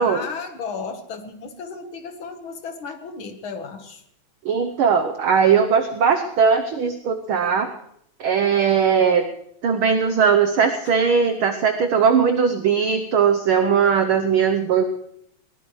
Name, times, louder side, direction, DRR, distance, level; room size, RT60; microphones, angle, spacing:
voice 1, 0.0-4.0 10.9-11.0, left 5 dB, 50° left, 6 dB, 1.9 m, -34 dB
voice 2, 4.4-7.7 8.2-9.2 9.6-14.8, right 6 dB, 70° right, 6 dB, 1.3 m, -19 dB
21.0 x 19.5 x 3.2 m, 0.73 s
omnidirectional pair, 3.3 m